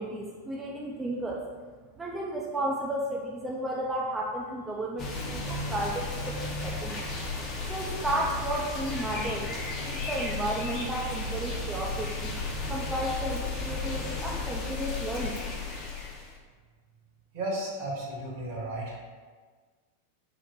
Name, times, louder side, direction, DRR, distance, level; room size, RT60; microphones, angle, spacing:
voice 1, 0.0-1.4 2.0-7.1 7.7-9.5 9.9-12.3 12.7-15.3, right 1 dB, 15° right, -3 dB, 0.4 m, -33 dB
sound 1, 5.0-16.4, left 3 dB, 35° left, 0.8 m, -34 dB
voice 2, 17.3-19.0, right 1 dB, 55° right, -2 dB, 1.1 m, -34 dB
4.2 x 2.1 x 4.4 m, 1.5 s
figure-of-eight pair, 90°, 0 cm